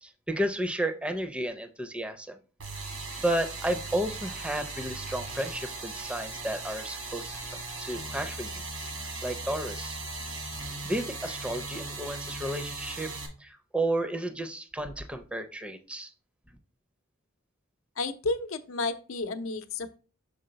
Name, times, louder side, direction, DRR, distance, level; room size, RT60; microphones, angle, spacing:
voice 1, 0.0-2.4 3.2-8.6 8.9-10.0 10.8-13.1 13.4-16.1, right 1 dB, 5° right, 8 dB, 0.5 m, -32 dB
sound 1, 2.6-13.3, right 3 dB, 90° right, 1.8 m, -38 dB
voice 2, 18.0-20.0, left 3 dB, 75° left, 9 dB, 0.6 m, -32 dB
6.6 x 3.8 x 3.9 m, 0.37 s
head